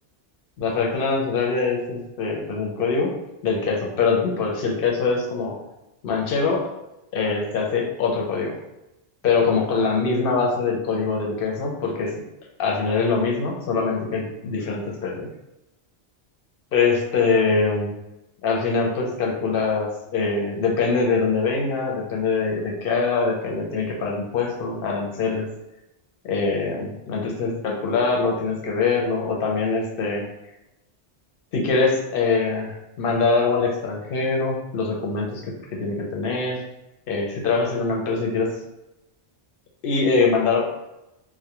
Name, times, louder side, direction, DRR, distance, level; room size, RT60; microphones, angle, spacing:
voice 1, 0.6-3.1 3.4-5.6 6.0-6.7 7.1-8.6 9.2-12.1 12.6-15.3 16.7-17.9 18.4-25.5 26.2-30.3 31.5-35.4 35.8-36.6 37.1-38.6 39.8-40.7, left 4 dB, 65° left, -1 dB, 0.7 m, -23 dB
2.2 x 2.1 x 2.9 m, 0.93 s
omnidirectional pair, 1.1 m